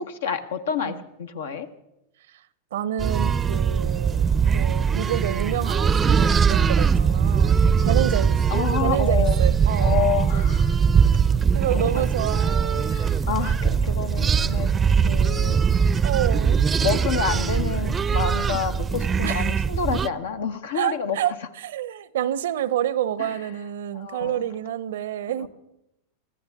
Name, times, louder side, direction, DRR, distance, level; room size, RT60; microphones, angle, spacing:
voice 1, 0.0-1.7 8.5-9.4 9.8-10.8 11.7-12.0 12.3-12.4 12.8-14.7 15.0-15.6 16.8-21.2 23.2-23.3 23.9-24.4 25.4-25.5, left 6 dB, 80° left, 1.3 m, -28 dB
voice 2, 2.7-8.4 8.8-9.9 11.5-13.0 16.0-16.6 19.2-19.5 20.7-21.3 21.6-25.5, right 11 dB, 75° right, 0.7 m, -28 dB
sound 1, 3.0-20.1, right 6 dB, 20° right, 0.5 m, -21 dB
24.5 x 14.5 x 3.6 m
hypercardioid pair, 100°, 0 cm